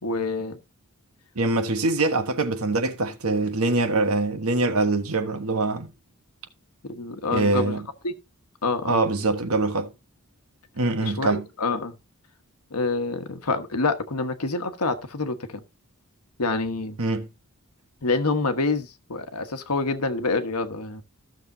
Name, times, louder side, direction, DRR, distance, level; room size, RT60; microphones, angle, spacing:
voice 1, 0.0-0.6 6.8-7.8 8.0-8.1 8.6-9.0 11.0-11.9 12.7-15.6 16.4-17.0 18.0-21.0, left 3 dB, 90° left, 1.2 m, -27 dB
voice 2, 1.3-5.9 7.3-7.8 8.8-9.9 10.8-11.4 17.0-17.3, right 2 dB, 75° right, 1.3 m, -24 dB
14.5 x 6.6 x 2.7 m
head